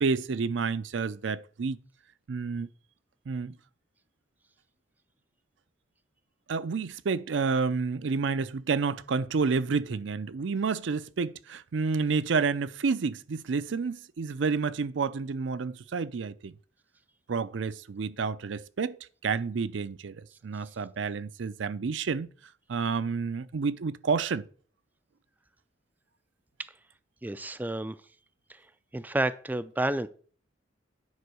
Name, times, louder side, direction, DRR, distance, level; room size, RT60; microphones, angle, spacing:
voice 1, 0.0-1.8 2.3-2.7 3.3-3.6 6.5-16.5 17.3-22.3 22.7-24.4, right 5 dB, 70° right, 0.5 m, -29 dB
voice 2, 27.2-28.0 28.5-28.7 28.9-30.1, right 1 dB, 10° right, 0.3 m, -30 dB
9.6 x 4.4 x 6.2 m
head